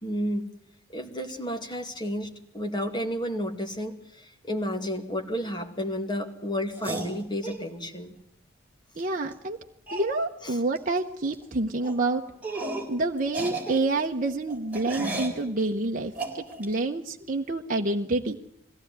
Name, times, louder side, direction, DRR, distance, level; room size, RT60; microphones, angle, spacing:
voice 1, 0.0-0.5 0.9-8.1 10.4-10.6, equal, 20° left, 4 dB, 2.3 m, -32 dB
sound 1, 6.7-7.6 9.0-9.1 9.3-9.4 9.9-10.1 10.8-11.0 11.2-11.4 11.8-12.0 12.4-12.9 13.2-15.4 16.2-16.7, right 2 dB, 10° right, 4.0 m, -34 dB
voice 2, 9.0-9.6 9.9-12.2 12.9-18.4, right 2 dB, 40° right, 1 dB, 1.0 m, -28 dB
22.0 x 16.0 x 9.5 m, 0.75 s
head